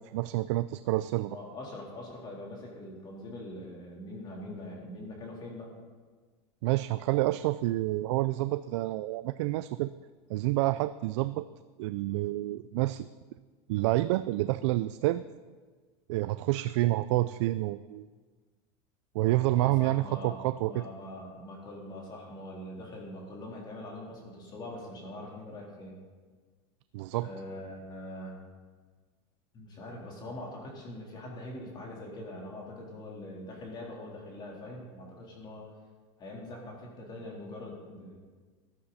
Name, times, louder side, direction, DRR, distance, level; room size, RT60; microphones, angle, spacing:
voice 1, 0.1-1.4 6.6-9.9 10.3-11.4 11.8-13.1 13.7-15.2 16.1-18.1 19.1-20.9 26.9-27.3, right 17 dB, 80° right, 13 dB, 0.4 m, -28 dB
voice 2, 1.3-5.7 19.5-26.0 27.2-28.4 29.5-35.7 36.2-38.2, left 1 dB, 30° left, -2 dB, 3.6 m, -43 dB
14.5 x 12.0 x 4.2 m, 1.5 s
supercardioid pair, 145°, 15 cm